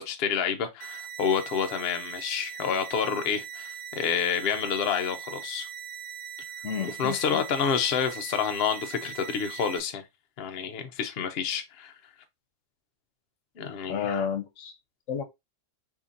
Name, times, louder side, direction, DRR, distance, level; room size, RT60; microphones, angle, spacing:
voice 1, 0.0-5.7 6.8-10.0 10.4-11.9 13.6-14.3, left 7 dB, 60° left, 0.8 m, -29 dB
sound 1, 0.8-9.8, right 8 dB, 65° right, 0.5 m, -40 dB
voice 2, 6.6-7.7 13.9-14.7 15.1-15.2, left 7 dB, 80° left, 1.0 m, -32 dB
2.8 x 2.7 x 3.6 m
omnidirectional pair, 1.3 m